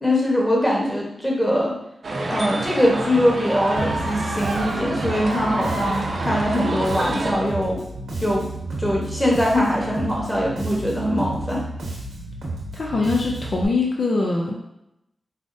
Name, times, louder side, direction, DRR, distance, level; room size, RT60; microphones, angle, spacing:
voice 1, 0.0-1.7 2.3-7.8 8.2-8.5 8.8-11.6, left 1 dB, 10° left, -3 dB, 1.2 m, -22 dB
sound 1, 2.0-7.3, right 2 dB, 65° right, 0.6 m, -28 dB
Bass guitar, 3.8-13.6, right 2 dB, 90° right, 0.9 m, -32 dB
voice 2, 12.7-14.6, left 3 dB, 65° left, -1 dB, 0.4 m, -22 dB
4.8 x 2.0 x 2.6 m, 0.83 s
cardioid pair, 40°, 0 cm